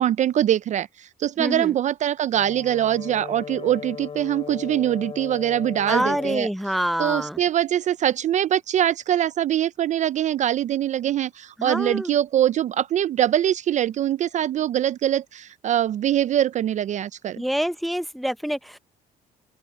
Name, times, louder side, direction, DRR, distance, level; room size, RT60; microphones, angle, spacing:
voice 1, 0.0-6.5 7.0-17.4, right 11 dB, 45° right, 0.4 m, -23 dB
voice 2, 1.4-1.8 5.9-7.4 11.6-12.1 17.4-18.8, equal, ahead, 0.6 m, -26 dB
Brass instrument, 2.3-6.5, left 6 dB, 35° left, 3.5 m, -37 dB
open air
cardioid pair, 110°, 17 cm